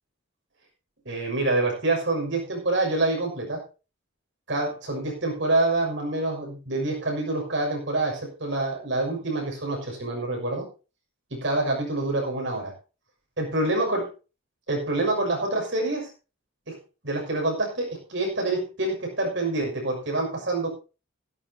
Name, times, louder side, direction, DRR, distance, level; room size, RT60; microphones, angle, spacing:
voice 1, 1.0-3.6 4.5-10.7 11.3-12.7 13.4-14.1 14.7-16.1 16.7-16.8 17.0-20.7, right 2 dB, 60° right, 0 dB, 6.4 m, -26 dB
16.0 x 14.5 x 2.9 m, 0.33 s
head